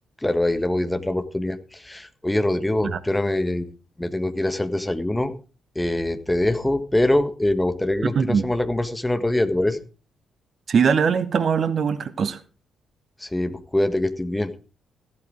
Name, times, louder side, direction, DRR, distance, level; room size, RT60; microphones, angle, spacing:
voice 1, 0.2-3.7 4.0-5.3 5.7-9.8 13.2-14.5, left 1 dB, 10° left, 1.6 m, -23 dB
voice 2, 8.0-8.5 10.7-12.4, right 6 dB, 45° right, 1.0 m, -21 dB
15.0 x 12.0 x 3.7 m
figure-of-eight pair, 40°, 0 cm